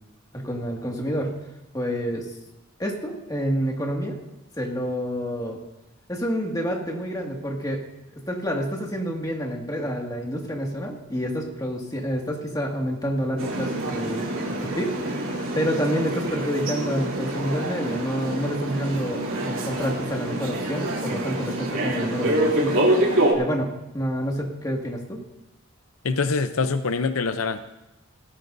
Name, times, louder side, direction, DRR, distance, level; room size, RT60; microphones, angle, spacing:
voice 1, 0.3-1.4 1.7-2.3 2.8-4.2 4.6-5.6 6.1-7.8 8.3-22.8 23.3-25.2, equal, 15° left, -1 dB, 2.0 m, -28 dB
sound 1, 13.4-23.3, right 1 dB, 70° right, 3.1 m, -26 dB
voice 2, 26.0-27.6, left 4 dB, 85° left, 10 dB, 0.7 m, -24 dB
18.5 x 15.0 x 2.7 m, 0.95 s
head